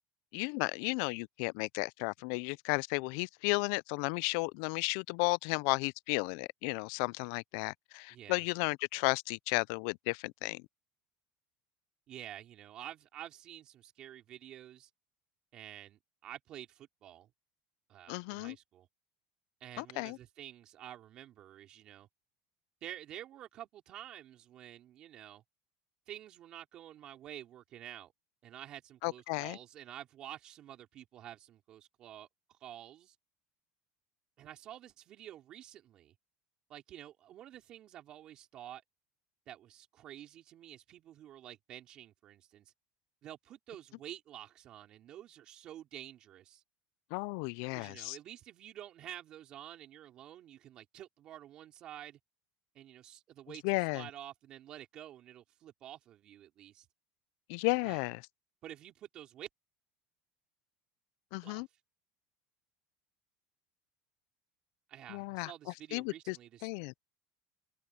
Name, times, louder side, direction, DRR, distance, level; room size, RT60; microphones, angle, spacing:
voice 1, 0.3-10.6 18.1-18.6 19.8-20.2 29.0-29.6 47.1-48.2 53.6-54.1 57.5-58.2 61.3-61.7 65.1-65.5 65.9-66.4 66.6-66.9, left 29 dB, 65° left, 0.3 m, -34 dB
voice 2, 8.1-8.4 12.1-14.9 15.5-17.3 17.9-18.9 19.6-22.1 22.8-25.4 26.1-28.1 28.4-33.1 34.4-36.1 36.7-38.8 39.5-42.7 43.2-46.6 47.7-52.2 52.7-56.9 57.8-58.1 58.6-59.5 61.4-61.6 64.9-66.7, right 12 dB, 35° right, 4.3 m, -49 dB
cardioid pair, 160°, 2 cm